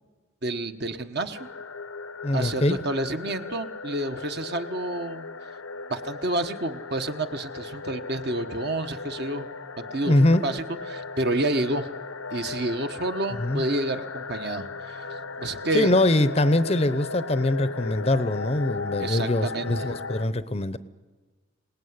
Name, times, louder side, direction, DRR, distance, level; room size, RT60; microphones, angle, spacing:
voice 1, 0.4-1.4 2.3-5.3 5.9-9.5 9.9-10.1 10.4-11.9 12.3-15.0 15.4-15.9 19.0-20.0, right 1 dB, 50° right, 7 dB, 1.3 m, -29 dB
sound 1, 1.3-20.3, left 4 dB, 90° left, 1.0 m, -37 dB
voice 2, 2.2-2.8 10.1-10.4 13.3-13.6 15.7-20.8, left 1 dB, 30° left, 14 dB, 0.7 m, -23 dB
27.0 x 19.0 x 9.6 m, 1.4 s
head